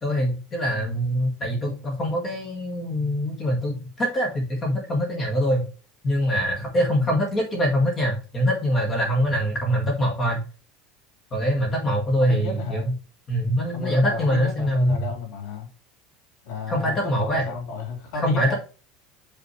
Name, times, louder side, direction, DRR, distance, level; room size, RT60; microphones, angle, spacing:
voice 1, 0.0-5.6 6.0-10.4 11.3-12.9 13.3-15.0 16.7-17.4 18.1-18.5, equal, 20° left, 1.8 m, -24 dB
voice 2, 12.2-12.9 13.7-15.7 16.4-18.6, left 3 dB, 65° left, 3.5 m, -32 dB
6.8 x 5.5 x 3.2 m
cardioid pair, 165°, 0 cm